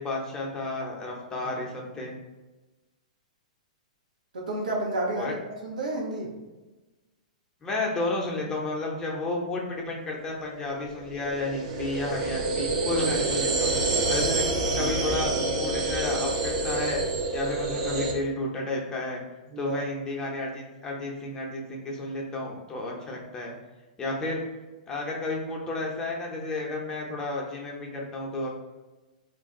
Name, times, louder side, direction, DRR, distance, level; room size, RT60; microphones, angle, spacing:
voice 1, 0.0-2.1 5.1-5.3 7.6-14.4 14.7-17.0 17.3-19.2 19.6-23.5 24.0-24.4 24.9-28.5, left 2 dB, 15° left, -2 dB, 0.7 m, -32 dB
voice 2, 4.3-5.3 5.6-6.3 14.1-14.2 19.5-19.8, right 2 dB, 85° right, -1 dB, 0.8 m, -30 dB
sound 1, 10.2-18.1, right 2 dB, 50° right, 0.6 m, -27 dB
2.5 x 2.2 x 3.6 m, 1.1 s
hypercardioid pair, 130°, 4 cm